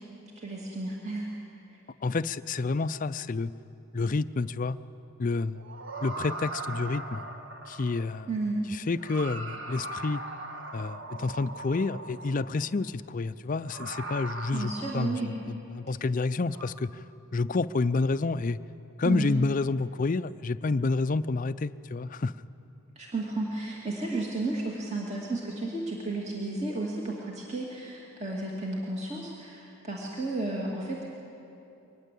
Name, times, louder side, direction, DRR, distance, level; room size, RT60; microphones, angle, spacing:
voice 1, 0.4-1.3 8.3-8.6 14.5-15.3 19.0-19.3 23.0-31.1, right 2 dB, 30° right, -3 dB, 2.4 m, -33 dB
voice 2, 2.0-3.5 3.9-4.8 5.2-5.7 6.0-7.2 7.7-8.3 8.7-10.2 10.7-17.0 17.3-18.6 19.0-22.3, left 3 dB, 35° left, 14 dB, 0.4 m, -29 dB
sound 1, 5.6-8.3 8.9-12.7 13.6-15.5 16.5-16.7, right 2 dB, 55° right, 1.6 m, -40 dB
23.5 x 19.5 x 8.3 m, 2.8 s
head